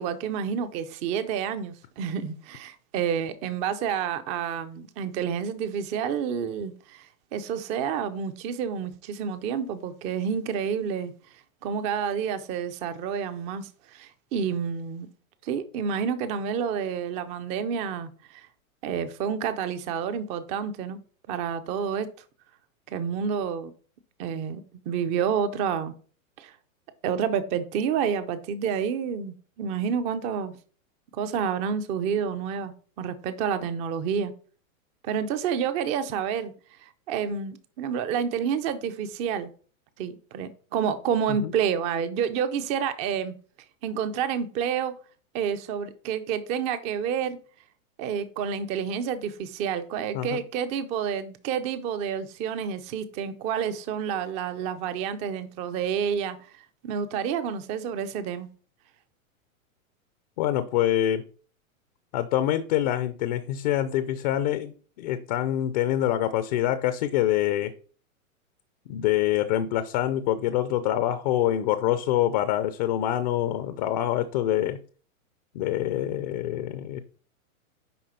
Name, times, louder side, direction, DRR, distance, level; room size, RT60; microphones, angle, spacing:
voice 1, 0.0-11.1 11.6-15.1 15.4-18.5 18.8-21.0 21.3-22.1 22.9-23.7 24.2-25.9 26.4-26.5 27.0-30.5 31.1-34.3 35.0-36.5 36.8-39.5 40.0-43.3 43.8-44.9 45.3-47.4 48.0-58.5, right 7 dB, 15° right, 0.5 m, -29 dB
voice 2, 60.4-61.3 62.1-64.7 65.0-67.8 68.9-74.8 75.5-77.0, left 12 dB, 30° left, 0.5 m, -25 dB
10.0 x 3.6 x 5.7 m
hypercardioid pair, 150°, 42 cm